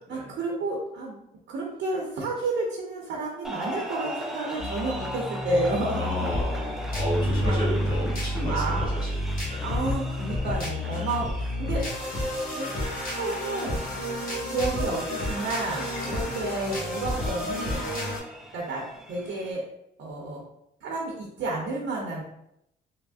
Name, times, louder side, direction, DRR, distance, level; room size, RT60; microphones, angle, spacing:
voice 1, 0.1-1.2 1.5-6.7 7.4-7.7 8.5-8.9 9.6-11.8 12.6-12.7 13.2-13.8 14.5-17.8 18.5-18.8 19.1-19.6 20.0-20.4 20.8-22.2, right 2 dB, 70° right, -1 dB, 0.6 m, -31 dB
sound 1, 3.4-19.5, equal, ahead, 0.3 m, -40 dB
sound 2, 4.6-18.2, left 1 dB, 50° left, 1.1 m, -30 dB
voice 2, 6.0-9.7 10.8-11.1 16.0-16.4, equal, 20° left, -6 dB, 1.1 m, -33 dB
3.3 x 2.0 x 2.3 m, 0.78 s
cardioid pair, 90°, 20 cm